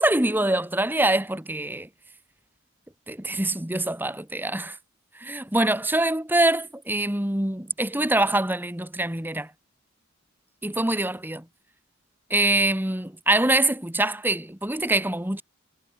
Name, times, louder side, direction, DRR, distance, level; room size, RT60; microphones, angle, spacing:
voice 1, 0.0-1.9 3.1-4.8 5.1-9.5 10.6-11.4 12.3-15.4, right 1 dB, 10° right, 1.7 m, -24 dB
head